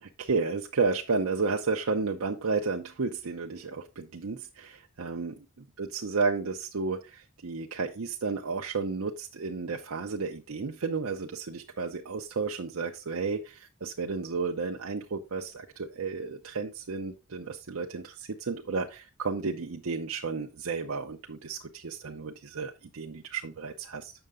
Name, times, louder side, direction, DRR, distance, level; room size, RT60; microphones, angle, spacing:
voice 1, 0.0-5.3 5.8-24.1, right 4 dB, 70° right, 0.7 m, -32 dB
7.9 x 6.5 x 3.6 m
head